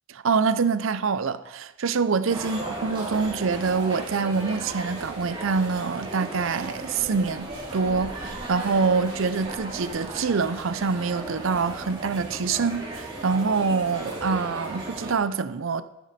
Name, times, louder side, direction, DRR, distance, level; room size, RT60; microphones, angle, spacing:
voice 1, 0.1-15.8, right 5 dB, 65° right, 0.6 m, -25 dB
sound 1, 2.3-15.1, right 2 dB, 25° right, 3.1 m, -36 dB
13.0 x 10.0 x 4.2 m
head